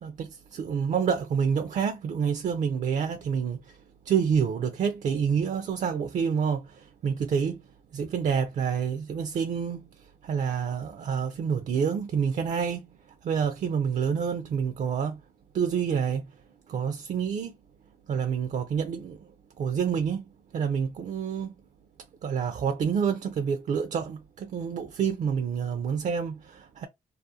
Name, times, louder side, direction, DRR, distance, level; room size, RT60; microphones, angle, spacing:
voice 1, 0.0-3.8 4.1-7.6 7.9-15.2 15.5-16.3 16.7-17.6 18.1-19.3 19.6-20.2 20.5-21.5 22.2-26.9, right 7 dB, 55° right, 0.4 m, -28 dB
2.4 x 2.3 x 2.7 m
cardioid pair, 75°, 15 cm